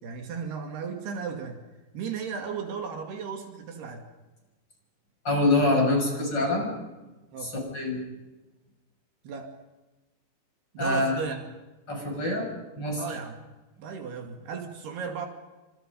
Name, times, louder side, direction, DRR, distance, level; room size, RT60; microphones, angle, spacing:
voice 1, 0.0-1.6 1.9-4.0 7.3-7.5 9.2-9.5 10.7-11.4 13.0-13.4 13.8-15.3, right 6 dB, 70° right, 4 dB, 4.4 m, -35 dB
voice 2, 5.2-6.7 7.4-8.0 10.8-11.2 11.9-12.5 12.8-13.0, left 2 dB, 25° left, 1 dB, 7.1 m, -25 dB
30.0 x 26.5 x 5.4 m, 1.1 s
omnidirectional pair, 4.8 m